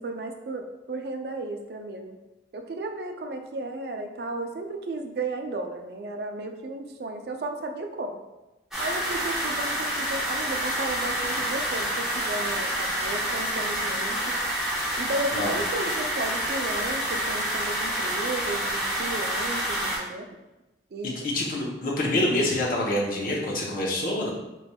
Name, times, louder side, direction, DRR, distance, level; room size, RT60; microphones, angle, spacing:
voice 1, 0.0-2.2 2.5-8.2 8.8-14.3 15.0-20.3 20.9-21.3, right 2 dB, 60° right, 4 dB, 0.4 m, -34 dB
sound 1, 8.7-20.0, right 1 dB, 5° right, 0.7 m, -28 dB
voice 2, 21.0-24.3, left 1 dB, 50° left, -2 dB, 0.7 m, -26 dB
4.2 x 3.1 x 2.2 m, 1.0 s
head